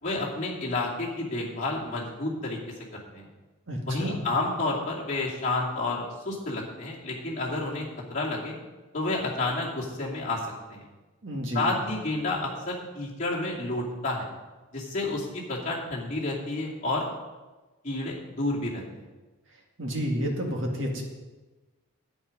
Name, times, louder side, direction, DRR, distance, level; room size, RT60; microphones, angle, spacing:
voice 1, 0.0-2.6 3.1-3.3 3.9-7.8 8.1-8.5 8.9-10.8 11.5-14.3 14.7-17.1 17.8-18.8, left 2 dB, 35° left, -5 dB, 2.5 m, -30 dB
voice 2, 3.7-4.2 11.2-11.7 19.8-21.0, equal, 55° right, 0 dB, 2.1 m, -30 dB
11.0 x 8.7 x 5.3 m, 1.2 s
head